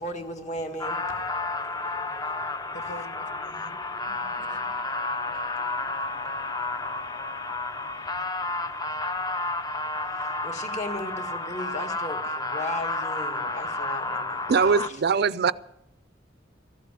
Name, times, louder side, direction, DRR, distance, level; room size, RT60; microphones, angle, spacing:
voice 1, 0.0-0.9 10.4-12.2 12.5-14.3, left 1 dB, 40° left, 1.7 m, -35 dB
sound 1, 0.8-14.9, left 2 dB, 20° left, 0.6 m, -31 dB
voice 2, 2.7-3.8 4.1-5.0 13.9-14.0, left 1 dB, 80° left, 0.8 m, -47 dB
voice 3, 14.5-15.5, right 5 dB, 60° right, 0.5 m, -21 dB
15.0 x 8.3 x 9.2 m
head